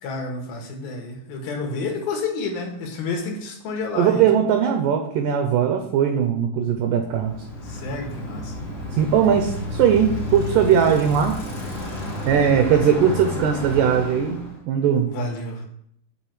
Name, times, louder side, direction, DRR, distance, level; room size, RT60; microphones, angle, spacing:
voice 1, 0.0-4.3 7.6-8.6 15.1-15.7, left 3 dB, 75° left, 2 dB, 3.4 m, -30 dB
voice 2, 4.0-7.4 8.9-11.4 12.3-15.1, right 8 dB, 75° right, 5 dB, 2.2 m, -19 dB
Bicycle, 7.0-14.6, left 2 dB, 30° left, 1.5 m, -31 dB
7.4 x 5.8 x 7.4 m, 0.71 s
omnidirectional pair, 4.4 m